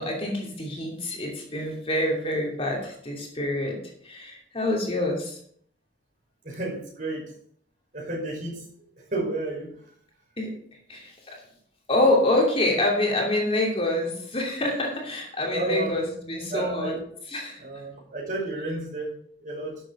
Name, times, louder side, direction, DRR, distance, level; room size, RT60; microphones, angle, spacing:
voice 1, 0.0-3.8 4.0-5.4 10.4-10.5 10.9-11.4 11.9-16.9 17.3-17.6, left 1 dB, 30° left, -1 dB, 2.8 m, -26 dB
voice 2, 6.4-7.2 7.9-8.6 9.1-9.7 15.5-15.9 16.5-17.0 17.6-19.1 19.4-19.7, right 2 dB, 45° right, -2 dB, 5.4 m, -31 dB
12.0 x 7.7 x 5.4 m, 0.63 s
head